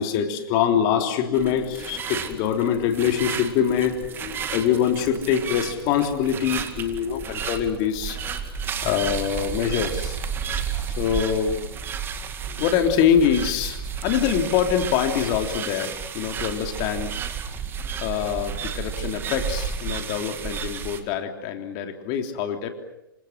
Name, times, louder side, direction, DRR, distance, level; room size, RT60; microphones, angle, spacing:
voice 1, 0.0-10.2 10.7-11.6 12.4-17.1 18.0-22.7, left 8 dB, 35° left, 5 dB, 3.4 m, -24 dB
sound 1, 1.3-21.0, right 7 dB, 20° right, 2.1 m, -32 dB
27.5 x 26.0 x 6.8 m, 0.90 s
figure-of-eight pair, 110°, 12 cm